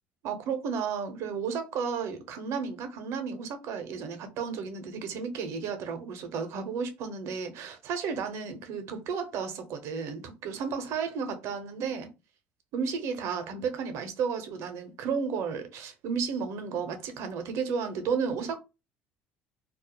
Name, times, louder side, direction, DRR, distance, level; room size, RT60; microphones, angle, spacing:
voice 1, 0.2-12.1 12.7-18.6, right 6 dB, 65° right, 0.6 m, -33 dB
2.3 x 2.0 x 2.8 m
hypercardioid pair, 75°, 5 cm